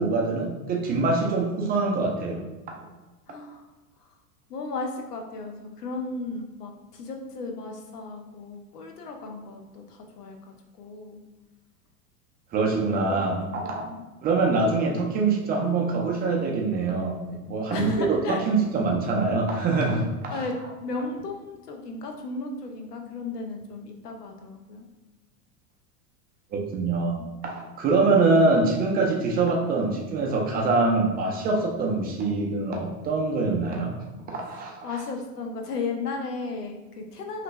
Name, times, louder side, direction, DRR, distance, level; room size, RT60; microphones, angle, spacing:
voice 1, 0.0-2.4 2.7-2.8 12.5-13.8 14.2-20.4 26.5-27.2 27.4-33.9 34.3-35.0, right 3 dB, 20° right, 0 dB, 0.4 m, -24 dB
voice 2, 3.3-3.6 4.5-10.4 10.8-11.2 13.1-14.0 17.7-18.4 20.3-24.8 27.2-27.3 34.8-37.4, left 3 dB, 90° left, 3 dB, 0.7 m, -35 dB
3.2 x 2.5 x 3.0 m, 1.1 s
hypercardioid pair, 95°, 45 cm